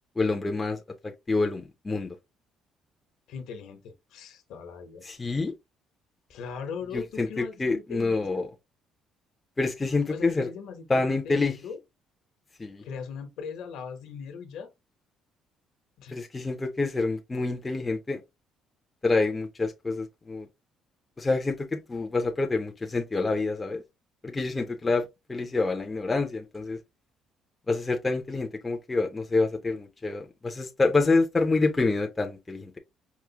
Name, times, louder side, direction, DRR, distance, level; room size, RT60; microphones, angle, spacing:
voice 1, 0.2-0.8 1.3-2.1 5.0-5.5 6.9-8.5 9.6-10.5 10.9-11.5 12.6-12.8 16.1-18.2 19.0-20.5 21.2-23.8 24.2-26.8 27.7-32.8, left 3 dB, 15° left, 0.4 m, -27 dB
voice 2, 3.3-5.0 6.3-8.4 10.1-11.8 12.8-14.7 16.0-16.1, left 6 dB, 70° left, 0.9 m, -39 dB
4.7 x 2.0 x 2.8 m
cardioid pair, 175°, 0 cm